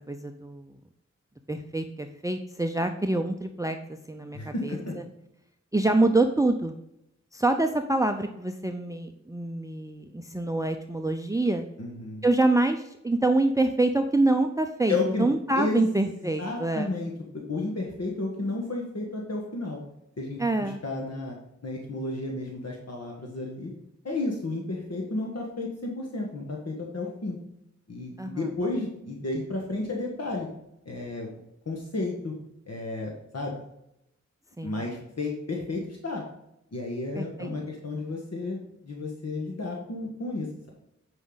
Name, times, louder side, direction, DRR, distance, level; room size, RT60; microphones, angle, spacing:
voice 1, 0.1-0.7 1.5-5.0 5.7-6.8 7.3-11.6 12.2-16.9 20.4-20.8 28.2-28.5 34.6-34.8 37.1-37.5, right 2 dB, 10° right, 6 dB, 0.6 m, -26 dB
voice 2, 4.3-4.9 11.8-12.2 14.9-15.3 15.5-19.8 20.2-21.3 21.6-23.7 24.0-27.4 27.9-30.5 30.8-32.3 32.7-33.6 34.6-36.2 36.7-40.7, left 2 dB, 60° left, -1 dB, 1.6 m, -32 dB
9.8 x 5.2 x 3.9 m, 0.82 s
wide cardioid pair, 75°, 29 cm